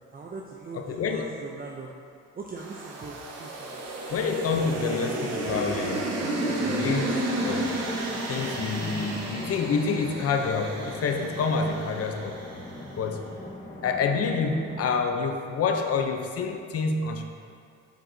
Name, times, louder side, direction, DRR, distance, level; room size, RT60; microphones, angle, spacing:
voice 1, 0.1-1.9 2.4-3.9 6.7-7.0, right 4 dB, 30° right, -1 dB, 0.5 m, -41 dB
voice 2, 0.7-1.2 4.1-6.0 6.5-7.7 8.3-12.4 12.9-13.2 13.8-17.2, left 5 dB, 50° left, 5 dB, 0.6 m, -27 dB
sound 1, 2.6-12.9, right 1 dB, 60° right, 0.9 m, -32 dB
sound 2, 6.9-14.9, left 1 dB, 20° left, 1.0 m, -42 dB
7.7 x 4.6 x 2.7 m, 2.3 s
cardioid pair, 90°, 30 cm